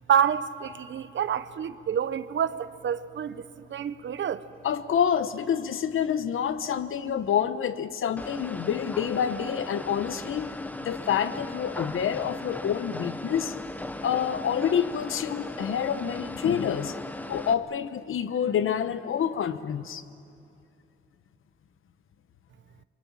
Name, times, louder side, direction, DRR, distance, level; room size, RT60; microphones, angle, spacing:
voice 1, 0.1-4.4, right 8 dB, 65° right, 0.9 m, -28 dB
voice 2, 4.6-10.5 10.8-13.6 14.0-17.0 17.3-20.0, left 8 dB, 75° left, 1.0 m, -27 dB
sound 1, 8.2-17.5, left 2 dB, 5° left, 0.7 m, -37 dB
30.0 x 24.5 x 7.3 m
wide cardioid pair, 180°, 21 cm